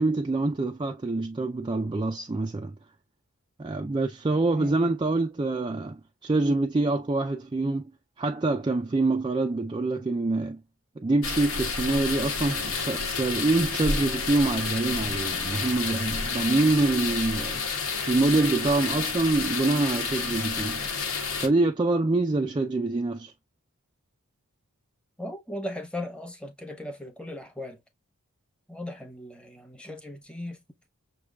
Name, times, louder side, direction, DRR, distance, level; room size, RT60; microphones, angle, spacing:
voice 1, 0.0-2.7 3.6-7.9 8.2-10.6 11.0-20.8 21.4-23.3, right 2 dB, 20° right, 0.4 m, -25 dB
voice 2, 4.6-5.0 25.2-27.8 28.7-30.6, left 1 dB, 5° left, 0.9 m, -37 dB
sound 1, 11.2-21.5, left 4 dB, 65° left, 1.1 m, -30 dB
6.0 x 3.1 x 2.3 m
head